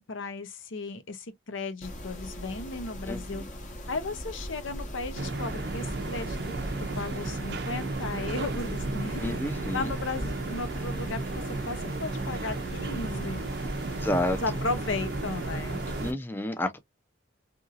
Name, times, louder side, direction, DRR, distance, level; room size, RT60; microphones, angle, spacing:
voice 1, 0.0-3.4 3.9-6.4 6.8-13.5 14.4-15.8, left 3 dB, 80° left, 0.7 m, -35 dB
Mechanisms, 1.8-16.1, equal, 40° left, 0.9 m, -40 dB
voice 2, 3.0-3.5 9.2-9.9 13.9-14.4 16.0-16.8, left 1 dB, 10° left, 0.4 m, -30 dB
sound 1, 5.1-16.1, right 3 dB, 55° right, 0.5 m, -34 dB
2.8 x 2.7 x 2.4 m
head